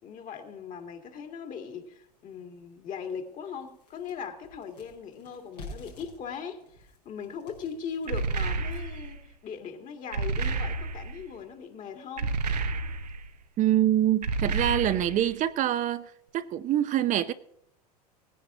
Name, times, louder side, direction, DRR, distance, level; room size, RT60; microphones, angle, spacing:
voice 1, 0.0-12.3, left 6 dB, 40° left, 2.3 m, -39 dB
sound 1, 1.9-2.0 2.5-2.6 3.0-9.1, left 2 dB, 90° left, 5.1 m, -49 dB
sound 2, 8.1-9.2 10.1-11.2 12.2-13.3 14.2-15.3, right 3 dB, 85° right, 1.1 m, -30 dB
voice 2, 13.6-17.3, right 12 dB, 40° right, 0.7 m, -25 dB
18.0 x 10.0 x 3.8 m
hypercardioid pair, 85°, 20 cm